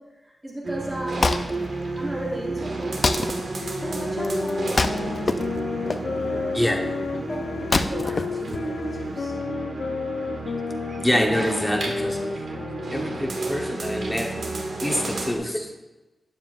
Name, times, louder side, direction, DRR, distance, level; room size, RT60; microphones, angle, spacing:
voice 1, 0.0-1.4 1.7-3.0 3.8-6.8 7.2-9.4, right 1 dB, 20° right, -7 dB, 3.2 m, -36 dB
sound 1, 0.6-15.4, right 2 dB, 60° right, 1.6 m, -31 dB
Wood, 0.8-9.1, left 3 dB, 35° left, 0.5 m, -28 dB
sound 2, 3.6-13.6, left 4 dB, 85° left, 0.6 m, -32 dB
voice 2, 6.5-6.9 11.0-12.4 12.9-14.4 14.8-15.7, left 1 dB, 5° left, 2 dB, 1.1 m, -26 dB
12.5 x 9.7 x 2.5 m, 1.1 s
wide cardioid pair, 180°, 0 cm